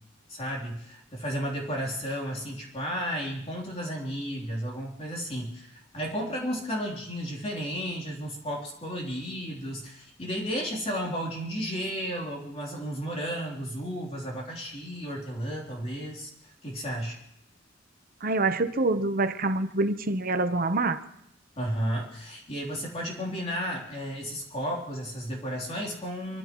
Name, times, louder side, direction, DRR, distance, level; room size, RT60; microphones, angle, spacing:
voice 1, 0.3-16.3 16.6-17.2 21.6-26.4, equal, 35° left, -2 dB, 3.4 m, -33 dB
voice 2, 18.2-21.0, right 2 dB, 50° right, 9 dB, 0.9 m, -26 dB
25.0 x 15.5 x 3.1 m, 0.77 s
head